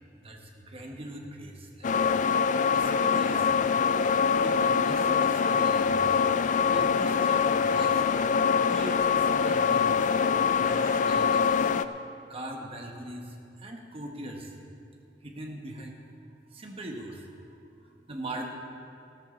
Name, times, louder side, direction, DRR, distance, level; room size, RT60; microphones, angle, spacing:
voice 1, 0.1-1.9 2.7-3.5 4.4-6.2 6.6-8.1 8.6-10.1 10.6-11.7 12.3-14.6 15.2-16.0 16.5-17.3 17.6-18.5, right 1 dB, 35° right, 1 dB, 1.4 m, -41 dB
sound 1, 1.8-11.8, left 6 dB, 45° left, 0.4 m, -24 dB
15.0 x 13.0 x 3.9 m, 2.6 s
head